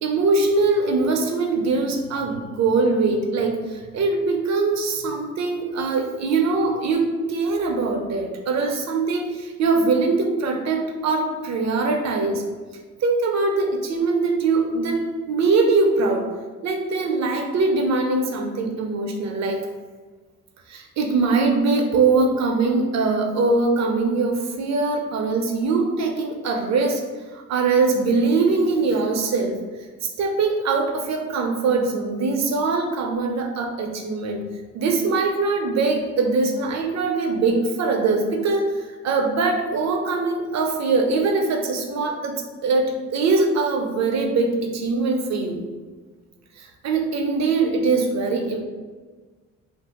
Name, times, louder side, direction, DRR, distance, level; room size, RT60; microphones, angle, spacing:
voice 1, 0.0-12.4 13.0-16.3 16.6-19.7 20.7-27.0 27.3-29.6 30.2-34.4 34.7-45.6 46.6-48.6, right 3 dB, 65° right, 3 dB, 0.6 m, -22 dB
2.7 x 2.4 x 3.5 m, 1.4 s
cardioid pair, 90°, 30 cm